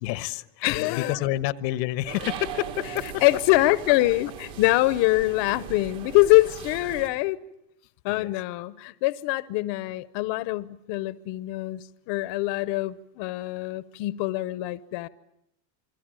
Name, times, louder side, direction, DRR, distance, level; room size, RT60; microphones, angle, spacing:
voice 1, 0.0-3.2 8.1-8.3, left 15 dB, 80° left, 1.3 m, -29 dB
voice 2, 0.6-1.2 3.2-7.4 8.0-15.1, left 18 dB, 60° left, 1.0 m, -24 dB
sound 1, 2.1-7.1, right 8 dB, 85° right, 4.2 m, -39 dB
28.5 x 22.5 x 9.0 m
supercardioid pair, 125°, 50 cm